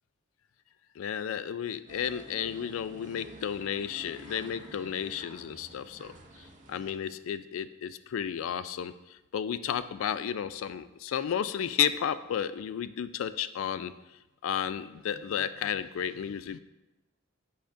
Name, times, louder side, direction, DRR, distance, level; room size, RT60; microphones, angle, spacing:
voice 1, 1.0-6.1 6.4-13.9 14.4-16.6, left 9 dB, 80° left, 14 dB, 0.3 m, -33 dB
sound 1, 1.9-6.9, right 1 dB, 35° right, 0.6 m, -50 dB
9.1 x 5.0 x 2.6 m, 1.0 s
head